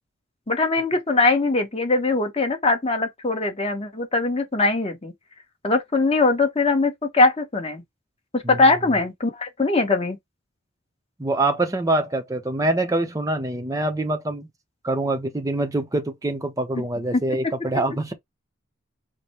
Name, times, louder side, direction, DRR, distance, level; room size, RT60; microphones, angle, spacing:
voice 1, 0.5-5.1 5.6-7.8 8.3-10.2 16.8-16.9, left 3 dB, 30° left, 1.2 m, -21 dB
voice 2, 11.2-14.5 14.8-18.1, right 2 dB, 15° right, 0.7 m, -25 dB
5.1 x 2.1 x 4.3 m
head